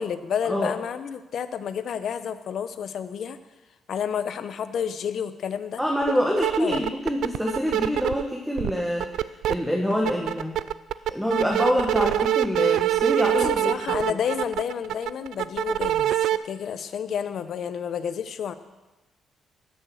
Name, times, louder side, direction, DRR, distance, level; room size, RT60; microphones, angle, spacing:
voice 1, 0.0-3.4 3.9-5.8 6.6-6.8 13.3-18.5, left 8 dB, 65° left, 12 dB, 0.8 m, -30 dB
voice 2, 5.8-9.1 9.5-10.6 11.1-14.0, equal, ahead, -1 dB, 1.6 m, -26 dB
sound 1, 6.0-6.1 6.4-8.2 8.6-9.5 9.9-16.4, right 12 dB, 80° right, 0.4 m, -24 dB
13.0 x 6.5 x 7.9 m, 1.1 s
cardioid pair, 90°, 0 cm